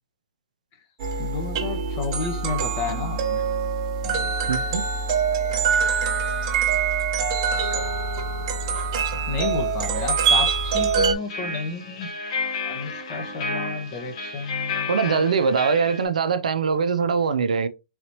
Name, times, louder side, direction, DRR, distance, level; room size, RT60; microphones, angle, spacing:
sound 1, 1.0-11.1, right 5 dB, 40° right, 1.0 m, -24 dB
voice 1, 1.2-3.4 4.0-4.3 9.3-12.1 12.6-15.3, left 5 dB, 35° left, 1.2 m, -31 dB
voice 2, 4.5-4.8 14.9-17.7, right 5 dB, 75° right, 0.5 m, -22 dB
sound 2, 11.0-16.1, left 4 dB, 50° left, 1.4 m, -32 dB
3.9 x 2.8 x 3.0 m
hypercardioid pair, 135°, 4 cm